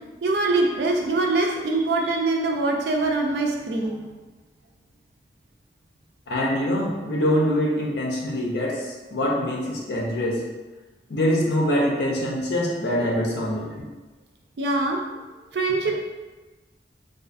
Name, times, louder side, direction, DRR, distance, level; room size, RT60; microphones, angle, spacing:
voice 1, 0.2-4.1 13.8-13.9 14.6-15.0 15.5-15.9, right 2 dB, 70° right, 1 dB, 0.4 m, -23 dB
voice 2, 6.3-10.5 11.1-13.7, equal, 75° left, -2 dB, 0.5 m, -24 dB
2.4 x 2.4 x 2.5 m, 1.2 s
head